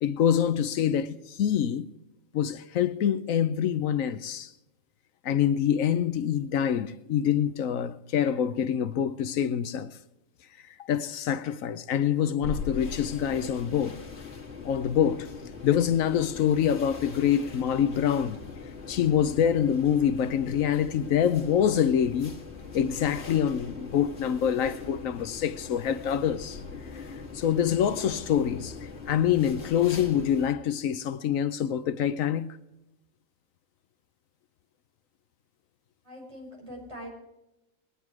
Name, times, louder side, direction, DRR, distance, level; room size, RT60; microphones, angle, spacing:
voice 1, 0.0-1.9 2.3-4.5 5.2-9.9 10.8-14.0 14.6-18.4 18.9-22.4 22.7-26.6 27.3-32.5, left 9 dB, 85° left, 1.1 m, -26 dB
sound 1, 12.4-30.6, left 4 dB, 55° left, 2.0 m, -41 dB
voice 2, 36.0-37.1, equal, 20° right, 5.9 m, -42 dB
21.0 x 9.8 x 4.7 m
omnidirectional pair, 1.4 m